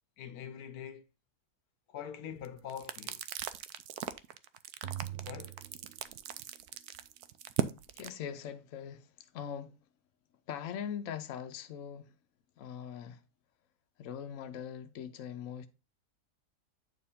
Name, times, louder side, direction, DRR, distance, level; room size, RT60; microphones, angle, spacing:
voice 1, 0.2-1.0 1.9-3.2 5.2-5.6, left 9 dB, 80° left, 1.2 m, -44 dB
sound 1, 2.4-8.1, right 12 dB, 85° right, 1.1 m, -38 dB
sound 2, 4.8-6.6, right 12 dB, 60° right, 0.8 m, -43 dB
voice 2, 7.9-9.7 10.5-12.1 12.6-13.2 14.0-15.7, left 8 dB, 65° left, 1.0 m, -41 dB
8.5 x 4.5 x 3.6 m
omnidirectional pair, 1.6 m